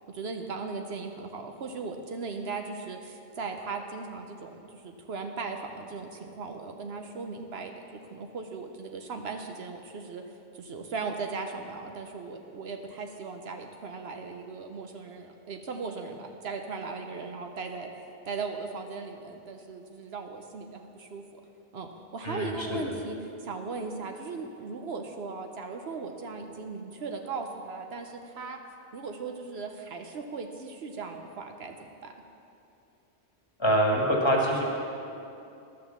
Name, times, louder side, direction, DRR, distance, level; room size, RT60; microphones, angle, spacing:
voice 1, 0.1-10.2 10.5-21.2 21.7-28.6 28.9-32.1, right 4 dB, 65° right, 4 dB, 1.0 m, -38 dB
voice 2, 22.2-22.9 33.6-34.6, equal, 25° left, -2 dB, 1.6 m, -25 dB
11.5 x 6.5 x 7.1 m, 2.7 s
omnidirectional pair, 1.1 m